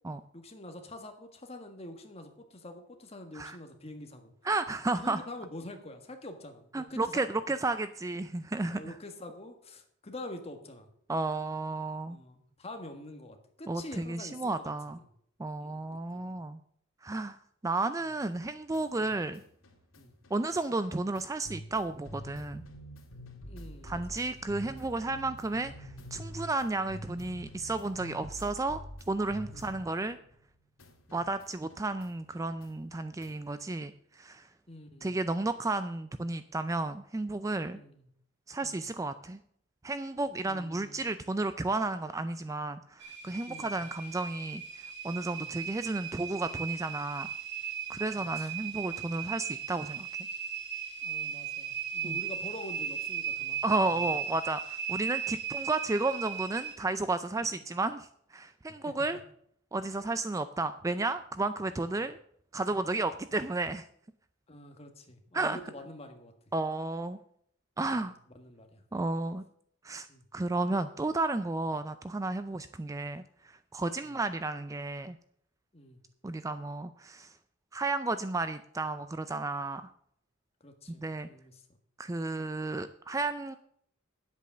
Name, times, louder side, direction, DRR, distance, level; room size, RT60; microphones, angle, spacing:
voice 1, 0.3-4.3 5.0-7.3 8.7-10.9 12.1-15.0 15.6-16.4 19.0-19.1 20.0-20.1 23.5-24.5 29.5-29.8 31.1-31.2 34.7-35.2 37.7-38.1 38.6-38.9 40.5-41.3 43.5-43.8 45.3-45.5 48.1-48.5 51.0-54.1 57.5-57.6 58.8-59.1 61.9-62.0 64.5-66.3 67.9-68.1 68.3-68.8 70.1-70.2 73.9-74.1 75.7-76.0 80.6-81.6, left 1 dB, 30° left, 5 dB, 1.6 m, -46 dB
voice 2, 4.4-5.2 6.7-8.9 11.1-12.2 13.7-15.0 15.4-16.6 17.0-17.4 17.6-19.4 20.3-22.6 23.8-28.8 29.1-30.2 31.1-34.5 35.0-37.8 38.5-39.4 39.8-47.3 47.9-50.1 52.0-52.2 53.6-59.2 59.7-62.2 62.5-63.9 65.3-65.6 66.5-67.2 67.8-68.1 68.9-69.4 69.8-70.1 70.3-75.2 76.2-77.3 77.7-79.9 81.0-81.3 82.0-83.6, right 2 dB, 15° right, 12 dB, 0.3 m, -32 dB
sound 1, 18.2-30.5 30.8-33.6, equal, 80° left, 2.0 m, -48 dB
sound 2, 43.0-56.8, right 7 dB, 55° right, 2.8 m, -37 dB
10.0 x 8.2 x 6.6 m, 0.66 s
head